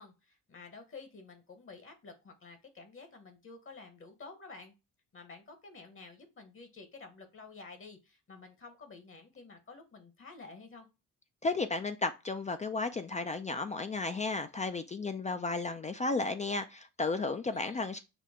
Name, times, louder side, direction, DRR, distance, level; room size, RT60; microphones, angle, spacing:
voice 1, 0.0-4.7 5.1-10.9 17.5-17.9, left 4 dB, 40° left, 1.1 m, -51 dB
voice 2, 11.4-18.0, left 3 dB, 20° left, 0.4 m, -33 dB
6.0 x 2.1 x 3.6 m
cardioid pair, 85°, 33 cm